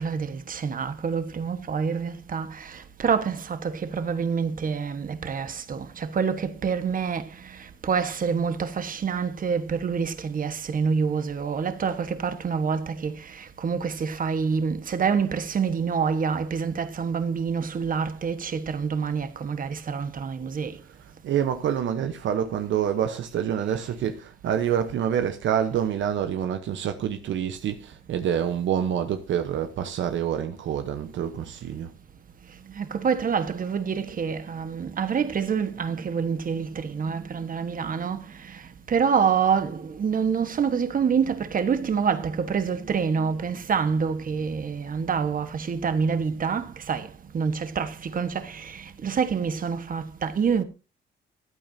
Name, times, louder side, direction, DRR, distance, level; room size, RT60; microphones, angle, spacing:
voice 1, 0.0-20.8 32.5-50.6, right 6 dB, 45° right, 1.4 m, -27 dB
voice 2, 21.0-31.9, right 9 dB, 70° right, 1.0 m, -27 dB
14.0 x 8.9 x 2.7 m
cardioid pair, 90°, 20 cm